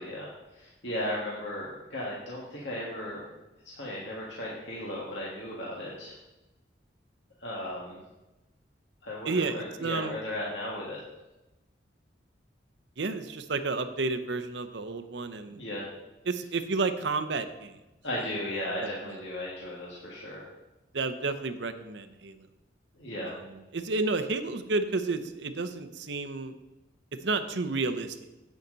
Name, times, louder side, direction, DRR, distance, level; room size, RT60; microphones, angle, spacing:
voice 1, 0.0-3.2 3.7-6.2 7.4-8.0 9.0-11.0 15.5-15.8 18.0-20.4 23.0-23.4, left 1 dB, 75° left, -5 dB, 1.9 m, -36 dB
voice 2, 9.3-10.2 13.0-15.6 16.3-17.7 18.8-18.9 20.9-22.4 23.2-26.5 27.2-28.2, right 3 dB, 75° right, 10 dB, 0.7 m, -31 dB
10.0 x 8.7 x 4.0 m, 1.0 s
head